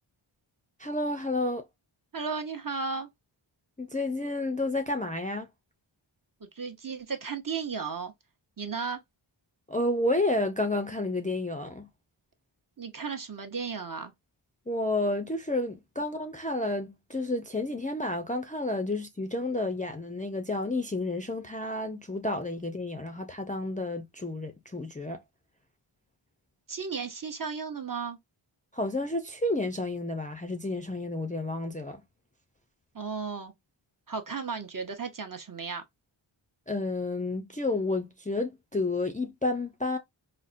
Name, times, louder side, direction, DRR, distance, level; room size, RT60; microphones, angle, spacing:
voice 1, 0.8-1.6 3.8-5.5 9.7-11.9 14.7-25.2 28.7-32.0 36.7-40.0, left 2 dB, 15° left, 0.4 m, -30 dB
voice 2, 2.1-3.1 6.5-8.1 8.6-9.0 12.8-14.1 26.7-28.2 32.9-33.5 34.1-35.8, right 5 dB, 40° right, 0.7 m, -34 dB
4.1 x 2.1 x 2.4 m
wide cardioid pair, 55°, 50 cm